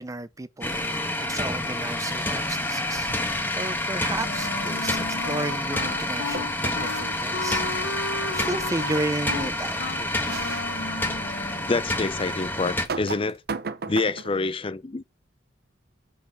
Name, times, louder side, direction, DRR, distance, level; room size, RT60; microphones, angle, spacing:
voice 1, 0.0-10.3, right 2 dB, 20° right, 0.5 m, -33 dB
sound 1, 0.6-12.9, left 1 dB, 10° left, 1.3 m, -28 dB
sound 2, 3.0-3.4 6.3-7.0 8.9-9.0 9.4-9.5 10.2-10.7 11.2-11.3 12.6-14.4, right 4 dB, 60° right, 0.8 m, -35 dB
Wind instrument woodwind instrument, 4.2-11.8, left 3 dB, 85° left, 1.0 m, -34 dB
voice 2, 11.7-13.4 13.9-15.1, left 3 dB, 30° left, 0.5 m, -27 dB
6.3 x 6.0 x 7.2 m
head